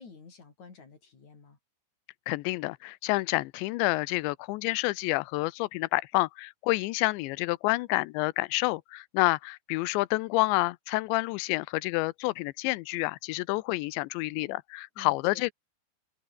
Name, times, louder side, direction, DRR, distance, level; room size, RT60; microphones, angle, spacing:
voice 1, 0.0-1.6 15.0-15.5, left 5 dB, 40° left, 5.4 m, -51 dB
voice 2, 2.3-15.5, left 21 dB, 90° left, 3.0 m, -28 dB
omnidirectional pair, 5.1 m